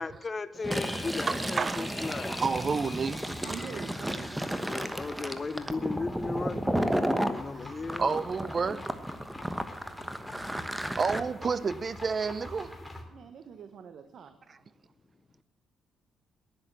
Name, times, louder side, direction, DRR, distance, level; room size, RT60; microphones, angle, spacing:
voice 1, 0.0-2.3 4.7-8.2 8.7-8.8 10.8-10.9, left 4 dB, 35° left, 0.9 m, -36 dB
Fill (with liquid), 0.6-7.4 7.9-11.2, right 1 dB, 5° right, 1.2 m, -33 dB
sound 1, 0.7-4.2, left 8 dB, 75° left, 2.1 m, -49 dB
sound 2, 1.1-13.0, left 1 dB, 10° left, 2.8 m, -48 dB
voice 2, 1.3-3.2 7.3-8.9 11.0-12.7, right 5 dB, 40° right, 0.7 m, -31 dB
voice 3, 3.4-4.9 13.1-14.4, right 7 dB, 60° right, 1.1 m, -45 dB
10.5 x 10.5 x 7.5 m
cardioid pair, 90°, 0 cm